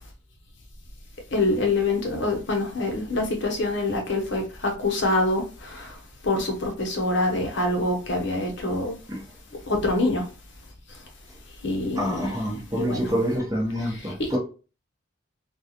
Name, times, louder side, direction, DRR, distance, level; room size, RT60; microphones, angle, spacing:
voice 1, 1.3-5.9 6.2-8.9 9.7-10.2 11.6-12.3 12.8-13.1 14.0-14.3, left 2 dB, 55° left, 0.8 m, -25 dB
voice 2, 11.9-14.4, equal, 15° right, 1.0 m, -27 dB
3.9 x 2.3 x 2.8 m
head